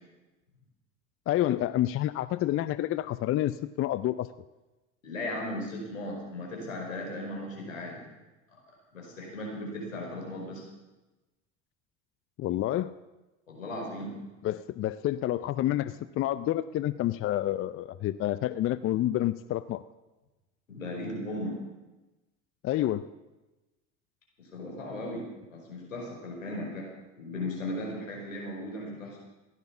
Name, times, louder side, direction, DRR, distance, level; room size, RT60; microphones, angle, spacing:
voice 1, 1.3-4.3 12.4-12.9 14.4-19.8 22.6-23.1, left 13 dB, 35° left, 15 dB, 0.6 m, -29 dB
voice 2, 5.0-8.0 8.9-10.6 13.5-14.1 20.7-21.6 24.4-26.9 27.2-29.2, left 1 dB, 85° left, -1 dB, 5.1 m, -37 dB
15.5 x 11.0 x 7.0 m, 1.1 s
hypercardioid pair, 75°, 38 cm